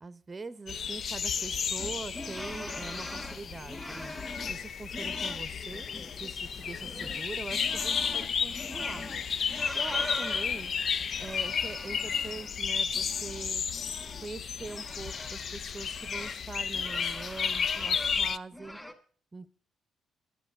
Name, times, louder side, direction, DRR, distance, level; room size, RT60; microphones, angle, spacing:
voice 1, 0.0-4.1 4.4-5.9 6.1-9.1 9.7-10.7 11.2-13.6 14.2-18.8 19.3-19.5, right 3 dB, 25° right, 16 dB, 0.8 m, -43 dB
sound 1, 0.7-18.4, left 6 dB, 55° left, 0.5 m, -33 dB
sound 2, 1.8-4.6 4.9-6.3 6.6-10.7 11.1-12.6 12.9-16.4 16.7-18.3 18.5-18.9, left 1 dB, 10° left, 2.0 m, -42 dB
sound 3, 6.4-12.5, left 5 dB, 85° left, 1.6 m, -54 dB
10.5 x 8.9 x 6.7 m, 0.43 s
cardioid pair, 90°, 0 cm